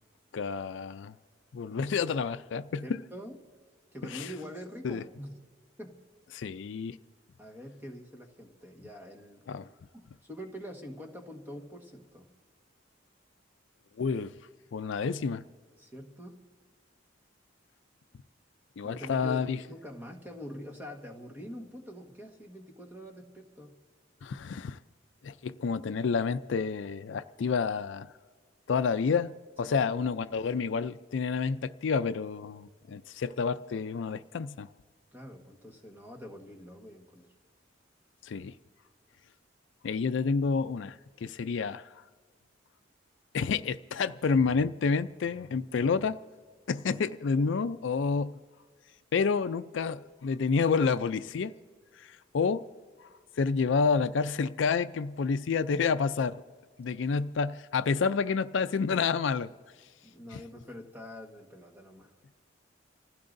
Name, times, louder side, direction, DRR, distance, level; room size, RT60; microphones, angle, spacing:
voice 1, 0.3-1.1 1.5-3.0 4.0-4.3 4.8-5.0 6.3-7.0 9.5-9.7 14.0-14.3 14.7-15.4 18.8-19.6 24.2-24.8 25.2-28.1 28.7-34.7 38.2-38.5 39.8-41.8 43.3-46.2 46.7-48.4 49.1-51.5 52.0-52.6 53.4-56.4 56.8-59.5 60.3-60.4, left 5 dB, 70° left, 0.4 m, -29 dB
voice 2, 2.8-3.4 3.9-5.4 5.8-6.0 7.4-12.3 15.8-16.4 18.8-23.8 29.6-29.8 35.1-37.3 47.3-47.5 60.0-62.1, equal, 10° right, 1.4 m, -45 dB
27.0 x 15.5 x 2.6 m
head